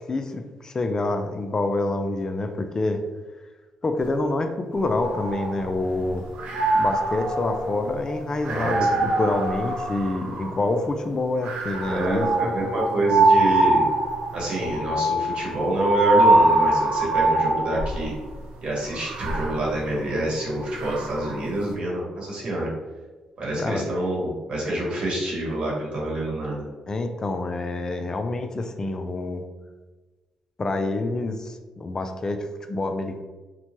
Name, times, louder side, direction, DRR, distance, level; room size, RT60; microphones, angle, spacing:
voice 1, 0.0-3.0 3.8-6.2 6.7-12.8 23.5-23.9 26.9-29.5 30.6-33.2, left 2 dB, 30° left, 6 dB, 0.3 m, -27 dB
sound 1, 4.8-6.0 6.3-10.7 11.4-18.1 18.9-21.5, right 2 dB, 75° right, 0.5 m, -23 dB
voice 2, 8.4-9.0 11.9-13.9 14.3-18.1 18.6-22.7 23.4-26.6, right 1 dB, 55° right, -4 dB, 1.1 m, -27 dB
2.9 x 2.1 x 2.9 m, 1.2 s
cardioid pair, 80°, 2 cm